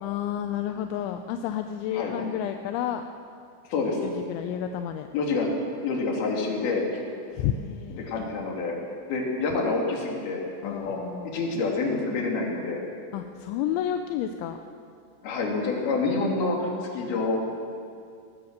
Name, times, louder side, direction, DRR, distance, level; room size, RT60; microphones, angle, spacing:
voice 1, 0.0-3.0 4.0-5.1 7.3-8.3 10.6-11.4 13.1-14.6, left 10 dB, 80° left, 7 dB, 2.8 m, -31 dB
voice 2, 5.1-5.5 5.8-6.8 8.0-8.7 9.1-11.0 11.3-12.8 15.2-17.4, left 3 dB, 55° left, 0 dB, 4.3 m, -27 dB
19.0 x 19.0 x 7.4 m, 2.4 s
omnidirectional pair, 5.9 m